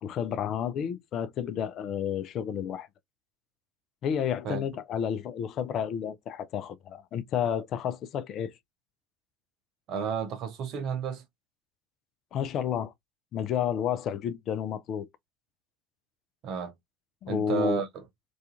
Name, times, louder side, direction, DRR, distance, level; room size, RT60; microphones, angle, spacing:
voice 1, 0.0-2.9 4.0-8.5 12.3-12.9 13.3-15.1 17.2-17.8, left 8 dB, 50° left, 0.4 m, -31 dB
voice 2, 9.9-11.2 16.4-16.7 17.3-18.0, right 6 dB, 50° right, 0.7 m, -31 dB
2.3 x 2.3 x 2.7 m
hypercardioid pair, 70°, 0 cm